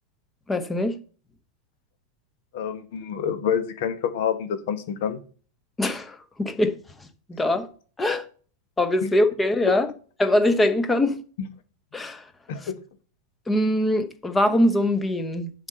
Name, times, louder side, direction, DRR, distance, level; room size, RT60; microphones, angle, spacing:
voice 1, 0.5-1.0 5.8-6.7 7.3-7.7 8.0-8.2 8.8-9.9 10.2-11.2 11.9-12.2 13.5-15.5, left 1 dB, 10° left, 1.0 m, -22 dB
voice 2, 2.5-5.2 9.0-9.1 11.4-11.5 12.5-12.7, left 8 dB, 50° left, 1.1 m, -27 dB
7.2 x 4.2 x 6.6 m
figure-of-eight pair, 90°, 0 cm